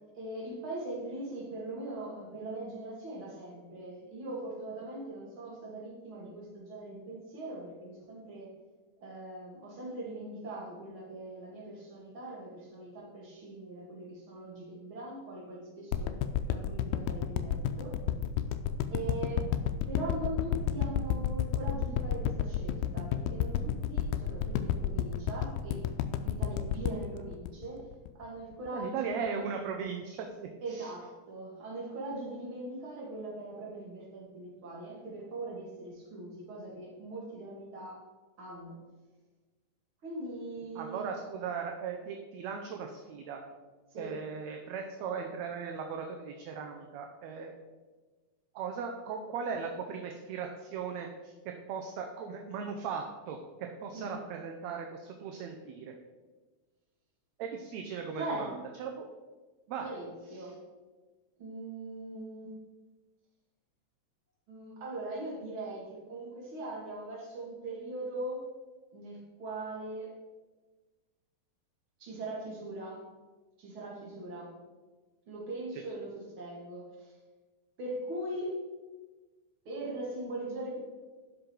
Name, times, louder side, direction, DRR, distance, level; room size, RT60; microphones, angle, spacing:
voice 1, 0.1-8.5 9.0-16.2 16.5-18.0 18.9-19.5 19.9-25.8 26.2-27.9 28.1-29.4 30.6-38.0 38.4-38.8 40.0-41.1 43.9-44.1 53.9-54.2 58.1-58.5 59.8-60.6 61.4-62.5 64.5-68.5 68.9-70.1 72.0-73.0 73.6-74.6 75.3-76.1 76.4-77.2 77.8-78.5 79.7-80.8, right 2 dB, 45° right, -3 dB, 2.7 m, -41 dB
sound 1, 15.9-28.2 28.7-28.8, left 10 dB, 80° left, 1.9 m, -31 dB
voice 2, 28.7-30.9 40.8-43.4 44.0-47.5 48.5-55.9 57.4-59.1 59.7-59.9 60.3-60.5 75.7-75.8, right 6 dB, 75° right, 3 dB, 1.8 m, -38 dB
11.5 x 5.3 x 4.5 m, 1.3 s
omnidirectional pair, 3.6 m